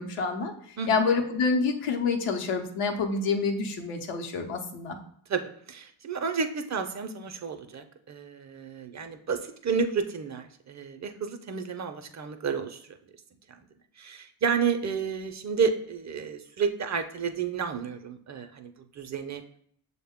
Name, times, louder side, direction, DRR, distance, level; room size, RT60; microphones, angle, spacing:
voice 1, 0.0-5.0, left 4 dB, 85° left, 4 dB, 0.8 m, -27 dB
voice 2, 5.7-13.0 13.5-13.6 14.0-19.4, right 6 dB, 35° right, 7 dB, 0.4 m, -31 dB
6.3 x 2.1 x 3.5 m, 0.64 s
supercardioid pair, 60°, 50 cm